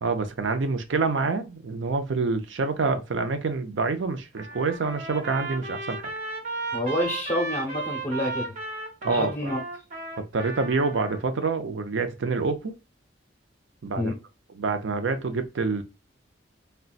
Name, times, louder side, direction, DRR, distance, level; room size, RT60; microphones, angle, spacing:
voice 1, 0.0-6.0 9.0-9.5 10.3-12.7 13.8-14.1 14.5-15.8, right 4 dB, 85° right, 0.5 m, -27 dB
Trumpet, 4.4-11.2, right 3 dB, 40° right, 0.9 m, -35 dB
voice 2, 6.7-8.5 9.1-9.6 14.0-14.2, left 1 dB, 20° left, 0.8 m, -28 dB
3.9 x 2.2 x 2.3 m
head